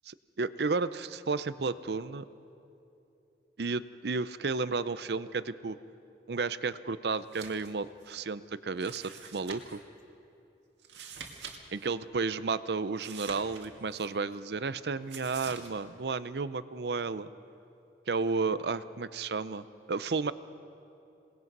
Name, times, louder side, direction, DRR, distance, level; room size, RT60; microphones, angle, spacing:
voice 1, 0.4-2.3 3.6-5.8 6.3-9.8 11.7-17.3 18.1-20.3, right 4 dB, 65° right, 15 dB, 0.6 m, -32 dB
sound 1, 7.2-7.7 8.0-8.1 8.8-9.8 10.8-11.6 11.8-11.9 13.0-14.1 15.1-15.7, right 6 dB, 85° right, 2.0 m, -45 dB
27.0 x 19.5 x 5.4 m, 2.8 s
head